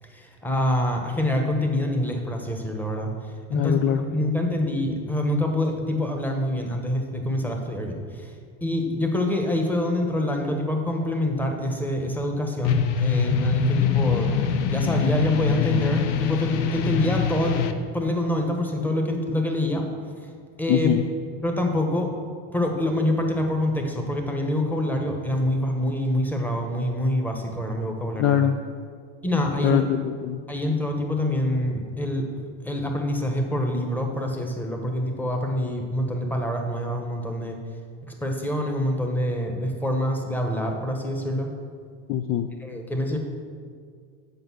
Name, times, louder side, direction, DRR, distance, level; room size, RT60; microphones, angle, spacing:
voice 1, 0.1-3.1 3.5-3.7 4.1-8.3 8.6-14.3 14.7-17.6 17.9-19.9 20.6-20.9 21.4-22.1 22.5-28.4 29.2-29.8 30.5-37.6 38.2-41.5 42.6-43.2, left 1 dB, 5° left, 3 dB, 1.1 m, -26 dB
voice 2, 3.5-4.0 20.7-21.0 28.2-28.6 29.6-30.4 42.1-42.5, left 10 dB, 40° left, 8 dB, 0.4 m, -22 dB
sound 1, 12.6-17.7, left 6 dB, 75° left, 0.7 m, -24 dB
7.9 x 5.2 x 6.3 m, 2.1 s
supercardioid pair, 105°, 36 cm